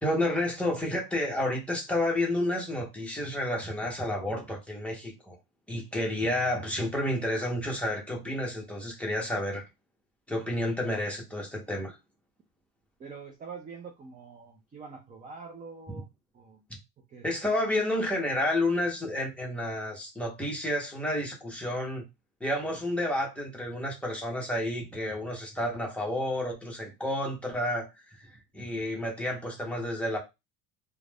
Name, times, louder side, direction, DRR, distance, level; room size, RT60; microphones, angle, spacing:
voice 1, 0.0-5.4 5.7-9.6 10.3-12.0 17.2-22.0 22.4-27.9 28.2-30.2, left 1 dB, 5° left, 0.8 m, -30 dB
voice 2, 13.0-16.1 16.3-16.6 17.1-17.3, right 5 dB, 20° right, 0.4 m, -45 dB
2.4 x 2.2 x 3.3 m
cardioid pair, 130°, 38 cm